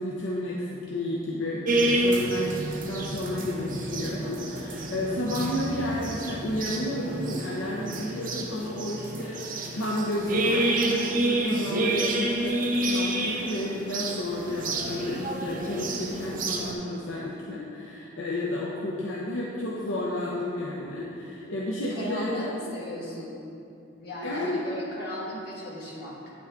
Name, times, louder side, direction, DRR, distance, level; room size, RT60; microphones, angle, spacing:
voice 1, 0.0-22.5 24.2-24.6, left 1 dB, 70° left, -5 dB, 0.8 m, -31 dB
sound 1, 1.7-16.7, right 1 dB, 40° right, 0.7 m, -29 dB
voice 2, 21.9-23.4 24.0-26.3, equal, 50° left, -6 dB, 1.8 m, -37 dB
9.2 x 6.0 x 3.7 m, 2.7 s
head